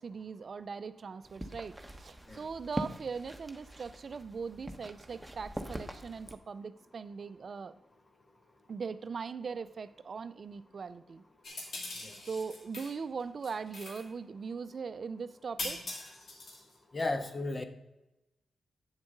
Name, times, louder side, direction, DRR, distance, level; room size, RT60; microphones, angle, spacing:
voice 1, 0.0-7.7 8.7-11.2 12.2-15.8, right 5 dB, 60° right, 13 dB, 0.4 m, -40 dB
sound 1, 1.2-6.4, right 1 dB, 10° right, 1.1 m, -43 dB
sound 2, 11.4-12.9 13.2-14.1 15.6-16.7, left 2 dB, 65° left, 2.1 m, -41 dB
voice 2, 16.9-17.6, left 2 dB, 40° left, 7 dB, 1.1 m, -34 dB
8.9 x 7.0 x 3.9 m, 0.98 s
supercardioid pair, 45°, 0 cm